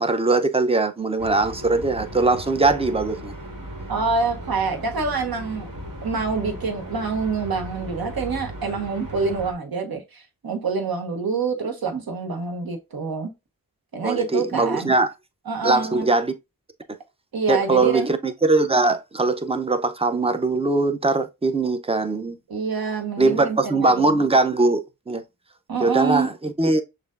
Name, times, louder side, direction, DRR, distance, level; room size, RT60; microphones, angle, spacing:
voice 1, 0.0-3.3 14.0-15.1 15.6-16.3 17.5-22.4 23.2-25.2 25.8-26.8, right 3 dB, 15° right, 0.5 m, -21 dB
sound 1, 1.2-9.5, right 1 dB, 65° right, 1.6 m, -36 dB
voice 2, 3.9-5.7 6.0-13.3 13.9-14.9 15.5-16.1 17.3-18.1 22.5-24.2 25.7-26.3, right 4 dB, 80° right, 1.2 m, -26 dB
6.5 x 2.5 x 2.4 m
wide cardioid pair, 85°, 36 cm